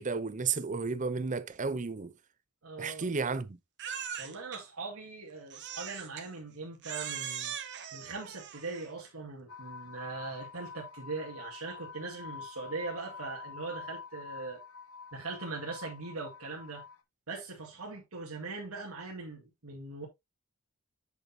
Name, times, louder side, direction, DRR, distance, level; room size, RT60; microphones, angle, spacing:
voice 1, 0.0-2.1 2.8-3.6, right 4 dB, 35° right, 0.7 m, -32 dB
voice 2, 2.6-3.1 4.2-7.5 7.9-14.6 15.1-16.8 17.3-20.1, right 3 dB, 90° right, 2.2 m, -41 dB
Crying sobbing, 3.8-4.6 5.5-6.3 6.8-8.9, right 8 dB, 55° right, 1.4 m, -40 dB
sound 1, 9.5-17.0, left 5 dB, 80° left, 1.0 m, -47 dB
8.2 x 6.5 x 2.8 m
head